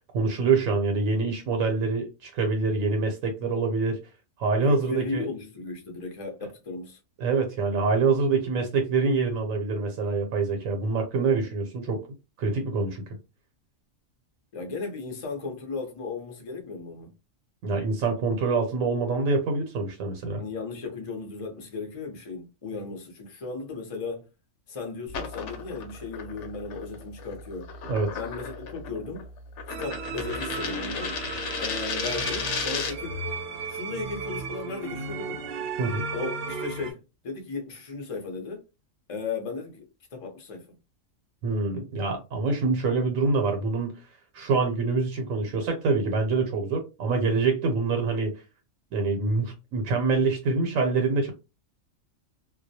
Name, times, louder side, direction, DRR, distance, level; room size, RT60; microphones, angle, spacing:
voice 1, 0.1-4.0 4.4-5.3 7.2-12.0 12.4-13.0 17.6-20.4 27.9-28.2 35.8-36.0 41.4-43.9 44.3-48.4 48.9-51.3, right 4 dB, 80° right, 1.0 m, -25 dB
voice 2, 4.6-7.0 14.5-17.1 20.3-24.3 24.7-27.7 28.1-29.3 29.8-31.1 31.6-33.2 33.7-35.4 36.1-38.6 39.1-39.8 40.1-40.8, left 4 dB, 40° left, 0.5 m, -36 dB
sound 1, 25.1-33.1, left 5 dB, 70° left, 0.8 m, -34 dB
sound 2, 29.7-36.9, right 4 dB, 65° right, 0.6 m, -35 dB
2.2 x 2.0 x 2.6 m
omnidirectional pair, 1.4 m